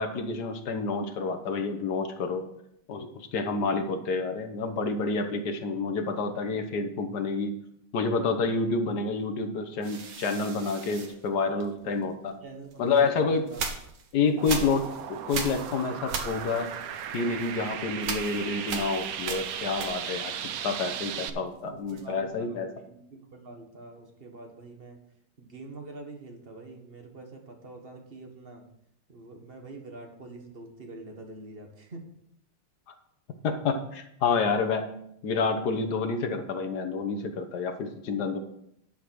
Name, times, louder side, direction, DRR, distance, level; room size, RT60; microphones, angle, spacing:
voice 1, 0.0-2.4 2.9-7.5 7.9-12.3 12.8-13.5 14.1-16.7 17.1-20.3 20.6-22.7 33.4-34.9 35.2-38.4, left 4 dB, 55° left, 7 dB, 1.4 m, -28 dB
voice 2, 3.5-4.0 11.4-12.0 12.4-13.6 21.2-25.0 25.4-28.6 29.1-32.1, right 2 dB, 30° right, 3 dB, 1.5 m, -46 dB
sound 1, 9.8-12.0 12.7-20.3 20.6-22.3, right 5 dB, 70° right, 2.0 m, -38 dB
sound 2, 14.4-21.3, right 9 dB, 90° right, 0.7 m, -36 dB
11.0 x 5.1 x 6.2 m, 0.76 s
omnidirectional pair, 2.4 m